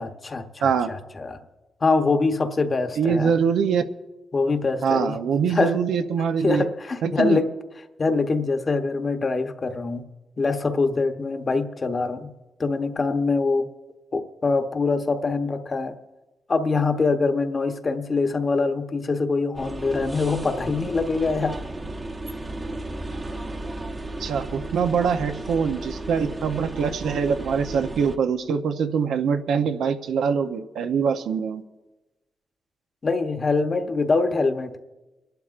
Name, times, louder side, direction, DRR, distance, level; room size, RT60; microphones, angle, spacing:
voice 1, 0.0-1.4 1.8-3.3 4.3-5.2 5.5-5.7 6.4-7.5 8.0-10.0 10.4-12.3 12.6-13.7 14.1-16.0 16.5-21.6 33.0-34.8, left 3 dB, 35° left, 6 dB, 0.9 m, -24 dB
voice 2, 0.6-0.9 3.0-3.8 4.8-6.7 7.0-7.4 24.2-31.6, right 6 dB, 85° right, 7 dB, 0.7 m, -23 dB
sound 1, 19.5-28.2, right 2 dB, 25° right, 0.8 m, -34 dB
29.5 x 11.5 x 2.5 m, 1.1 s
cardioid pair, 115°, 0 cm